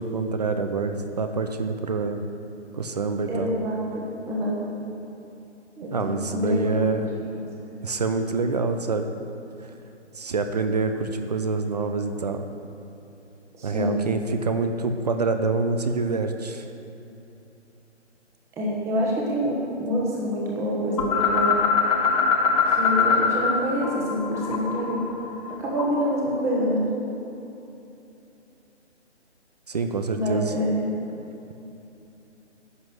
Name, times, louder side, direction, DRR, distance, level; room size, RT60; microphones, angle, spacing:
voice 1, 0.0-2.2 2.7-3.5 5.9-7.1 7.8-9.1 9.6-9.7 10.1-12.4 13.6-16.7 29.7-30.5, right 4 dB, 35° right, 7 dB, 0.6 m, -26 dB
voice 2, 3.3-4.6 5.8-7.5 13.6-14.0 18.6-21.5 22.7-25.0 25.5-26.8 30.1-30.9, equal, 10° right, -4 dB, 1.2 m, -26 dB
sound 1, 21.0-23.6 23.8-26.1, left 5 dB, 30° left, 1.0 m, -23 dB
11.0 x 6.0 x 7.6 m, 2.9 s
figure-of-eight pair, 150°, 35 cm